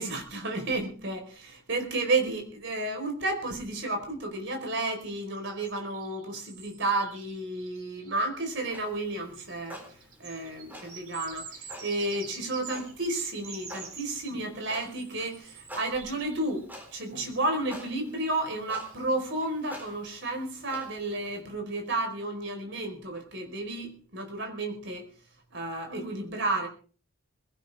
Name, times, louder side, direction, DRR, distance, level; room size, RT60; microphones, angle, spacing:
voice 1, 0.0-9.8 10.2-25.0 25.5-26.7, right 2 dB, 55° right, 4 dB, 4.7 m, -32 dB
sound 1, 5.3-8.3 9.1-9.2 9.5-16.6 18.4-18.5 18.9-19.2, right 5 dB, 80° right, 5.0 m, -47 dB
Clock, 8.6-21.4, equal, 10° right, 4.0 m, -49 dB
21.5 x 17.0 x 3.6 m, 0.40 s
head